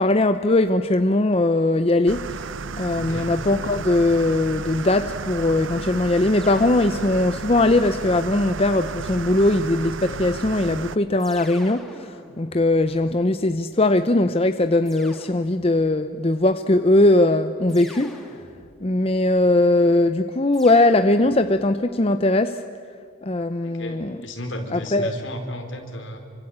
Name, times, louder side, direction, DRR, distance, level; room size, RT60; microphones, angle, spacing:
voice 1, 0.0-2.2 2.8-18.1 18.8-22.6 23.2-24.2 24.7-25.1, left 2 dB, 30° left, 9 dB, 0.6 m, -20 dB
sound 1, 2.1-11.0, right 5 dB, 65° right, 0.6 m, -33 dB
voice 2, 2.9-3.3 23.6-26.2, left 1 dB, 60° left, 4 dB, 4.2 m, -34 dB
sound 2, 6.4-7.6 9.1-9.9 11.2-13.5 14.8-16.0 17.7-19.0 20.5-21.7, left 1 dB, ahead, 2.5 m, -46 dB
27.5 x 25.0 x 8.8 m, 2.3 s
head